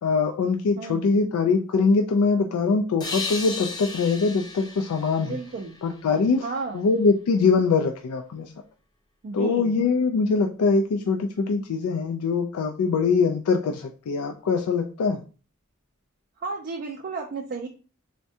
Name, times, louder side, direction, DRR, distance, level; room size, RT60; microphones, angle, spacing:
voice 1, 0.0-5.4 5.8-6.5 6.7-8.5 9.3-15.2, left 4 dB, 85° left, 4 dB, 0.3 m, -23 dB
voice 2, 0.8-1.2 5.2-5.8 6.4-6.9 9.2-9.8 16.4-17.7, right 4 dB, 45° right, 1 dB, 0.3 m, -33 dB
sound 1, 3.0-6.5, left 4 dB, 20° left, 0.4 m, -35 dB
3.4 x 2.2 x 2.6 m, 0.36 s
head